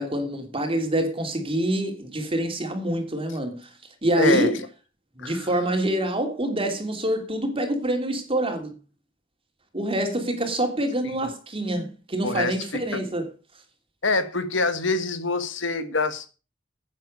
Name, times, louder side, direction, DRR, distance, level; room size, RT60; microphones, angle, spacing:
voice 1, 0.0-3.7 4.0-4.6 5.2-8.7 9.7-13.3, right 1 dB, 30° right, 3.0 m, -26 dB
voice 2, 4.2-4.6 5.2-5.4 12.2-13.0 14.0-16.3, left 3 dB, 85° left, 1.8 m, -25 dB
10.5 x 9.1 x 6.6 m
head